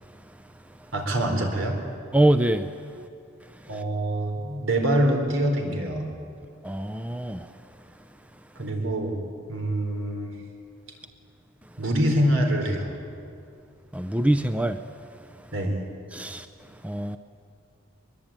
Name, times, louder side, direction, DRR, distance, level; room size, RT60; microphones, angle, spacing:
voice 1, 0.9-1.8 3.7-6.1 8.6-9.2 9.5-10.3 11.8-12.9 15.5-15.8, right 1 dB, 80° right, 4.3 m, -25 dB
voice 2, 2.1-2.7 3.7-3.8 6.6-7.5 13.9-14.8 16.1-16.5 16.8-17.2, right 1 dB, 5° right, 0.5 m, -24 dB
22.5 x 22.0 x 9.0 m
head